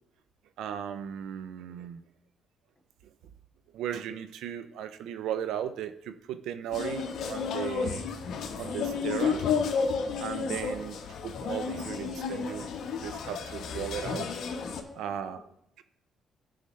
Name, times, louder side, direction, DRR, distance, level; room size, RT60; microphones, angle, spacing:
voice 1, 0.6-2.0 3.7-8.0 8.5-9.5 10.2-11.0 11.2-12.7 13.0-14.3 15.0-15.4, right 9 dB, 85° right, 11 dB, 0.5 m, -36 dB
sound 1, 6.7-14.8, left 5 dB, 70° left, 1.2 m, -32 dB
voice 2, 14.4-15.5, left 2 dB, 15° left, -2 dB, 2.7 m, -53 dB
14.5 x 5.5 x 3.2 m, 0.76 s
cardioid pair, 90°, 0 cm